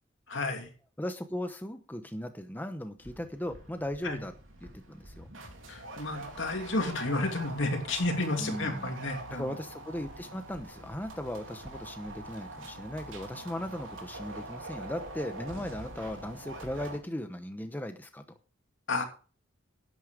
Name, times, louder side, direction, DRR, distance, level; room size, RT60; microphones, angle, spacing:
voice 1, 0.3-0.7 4.0-4.2 5.7-9.5 18.9-19.0, left 2 dB, 75° left, 4 dB, 2.7 m, -31 dB
voice 2, 1.0-4.3 4.6-5.3 8.4-8.9 9.3-18.2, left 1 dB, 10° left, 7 dB, 0.9 m, -37 dB
sound 1, 3.0-17.0, right 2 dB, 90° right, 3.3 m, -44 dB
11.0 x 9.4 x 5.0 m, 0.37 s
head